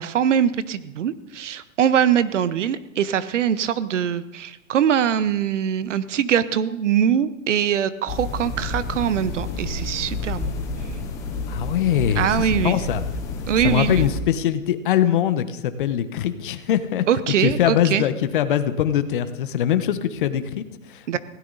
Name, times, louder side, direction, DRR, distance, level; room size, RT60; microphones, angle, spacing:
voice 1, 0.0-10.5 12.2-12.8 13.5-14.0 17.1-18.0 21.1-21.2, right 9 dB, 60° right, 15 dB, 1.0 m, -22 dB
sound 1, 8.1-14.2, left 2 dB, 10° left, 0.6 m, -29 dB
voice 2, 11.5-13.0 13.6-17.1 17.4-21.2, left 10 dB, 40° left, 11 dB, 1.1 m, -22 dB
19.0 x 17.0 x 4.1 m, 0.95 s
hypercardioid pair, 165°, 40 cm